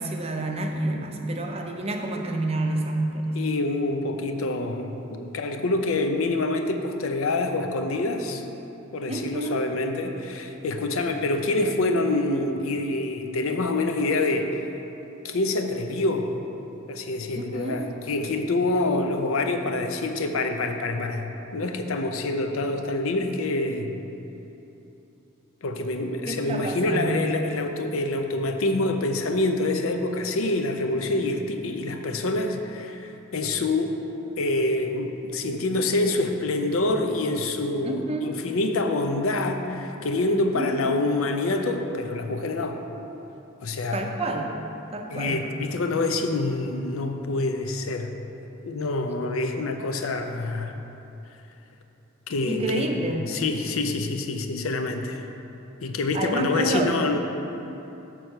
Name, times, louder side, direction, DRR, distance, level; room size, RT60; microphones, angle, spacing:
voice 1, 0.0-3.4 9.1-9.7 17.3-17.9 26.3-27.3 37.8-38.4 40.5-40.9 43.9-44.5 44.9-45.5 52.4-53.3 56.1-56.9, right 2 dB, 30° right, 2 dB, 0.5 m, -29 dB
voice 2, 3.3-8.4 8.9-14.6 15.2-16.3 16.9-23.9 25.6-34.0 34.4-42.8 43.6-44.1 45.1-48.1 48.6-50.7 52.3-52.9 53.3-55.2 55.8-57.2, left 2 dB, 80° left, 5 dB, 0.5 m, -26 dB
6.2 x 4.5 x 6.5 m, 3.0 s
head